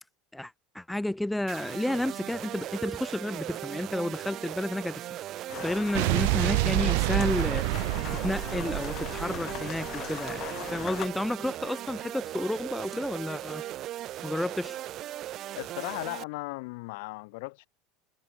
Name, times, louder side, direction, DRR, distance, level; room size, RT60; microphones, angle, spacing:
voice 1, 0.3-5.0 5.4-7.7 8.1-13.6 14.2-14.8, left 1 dB, 5° left, 0.4 m, -31 dB
sound 1, 1.5-16.2, right 13 dB, 45° right, 0.9 m, -38 dB
sound 2, 5.5-11.1, left 13 dB, 40° left, 0.9 m, -40 dB
Explosion, 5.9-10.3, right 28 dB, 70° right, 0.9 m, -28 dB
voice 2, 15.6-17.7, left 26 dB, 75° left, 1.1 m, -37 dB
supercardioid pair, 135°, 0 cm